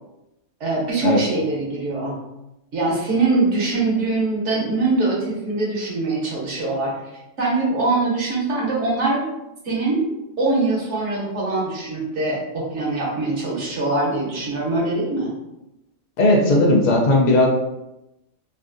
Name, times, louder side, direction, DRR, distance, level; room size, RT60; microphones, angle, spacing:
voice 1, 0.6-2.2 2.7-6.9 7.4-9.2 9.6-10.1 10.4-15.3, right 3 dB, 60° right, -4 dB, 1.3 m, -23 dB
voice 2, 16.2-17.5, left 1 dB, 55° left, -1 dB, 0.5 m, -16 dB
3.2 x 2.5 x 2.5 m, 0.92 s
omnidirectional pair, 1.4 m